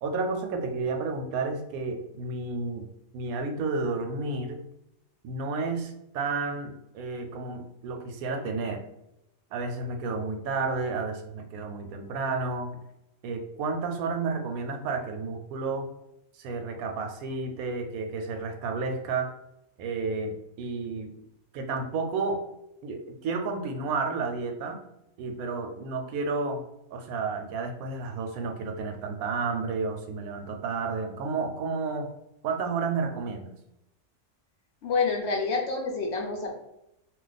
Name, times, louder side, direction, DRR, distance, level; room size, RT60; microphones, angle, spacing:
voice 1, 0.0-2.9 3.1-4.6 5.2-8.8 9.5-12.7 13.2-15.9 16.4-19.3 19.8-21.1 21.5-22.4 22.8-24.8 25.2-26.6 26.9-32.1 32.4-33.5, right 4 dB, 85° right, 4 dB, 1.0 m, -31 dB
voice 2, 34.8-36.5, left 4 dB, 65° left, 1 dB, 0.7 m, -28 dB
2.4 x 2.3 x 3.8 m, 0.84 s
omnidirectional pair, 1.5 m